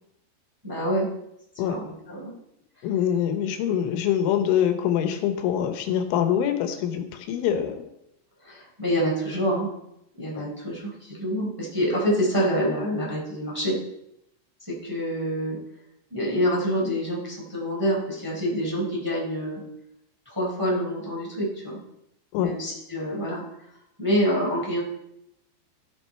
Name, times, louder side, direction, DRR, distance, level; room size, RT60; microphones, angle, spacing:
voice 1, 0.6-1.1 1.6-2.3 8.4-9.7 10.2-13.8 14.6-15.6 16.1-19.6 20.2-21.8 22.4-23.4 24.0-24.8, equal, 5° right, -4 dB, 3.0 m, -26 dB
voice 2, 2.8-7.9 22.3-22.5, left 9 dB, 85° left, 7 dB, 3.4 m, -24 dB
14.0 x 7.9 x 4.4 m, 0.81 s
omnidirectional pair, 5.3 m